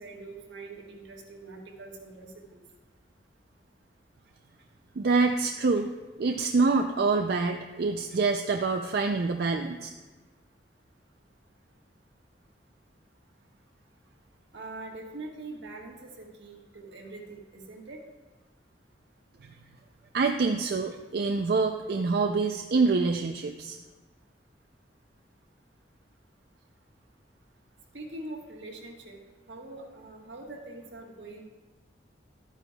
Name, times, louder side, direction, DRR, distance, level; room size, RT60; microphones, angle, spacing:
voice 1, 0.0-2.6 14.5-18.0 27.9-29.2 29.5-31.4, right 2 dB, 80° right, 0 dB, 1.5 m, -43 dB
voice 2, 5.0-5.9 6.2-9.9 19.4-19.5 20.1-23.8, right 4 dB, 55° right, 5 dB, 0.4 m, -26 dB
12.5 x 9.1 x 2.3 m, 1.3 s
head